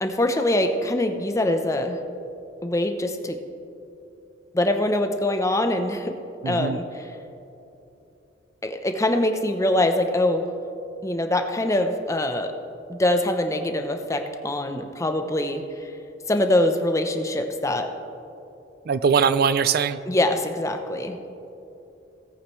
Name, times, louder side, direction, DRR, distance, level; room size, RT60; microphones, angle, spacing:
voice 1, 0.0-2.0 2.6-3.4 4.5-6.1 6.5-7.1 8.6-10.5 11.0-12.5 12.9-15.9 16.3-17.9 20.1-21.2, left 1 dB, 15° left, 6 dB, 0.7 m, -23 dB
voice 2, 6.4-6.8 18.9-20.0, right 6 dB, 55° right, 14 dB, 0.4 m, -21 dB
17.5 x 8.7 x 3.2 m, 2.8 s
head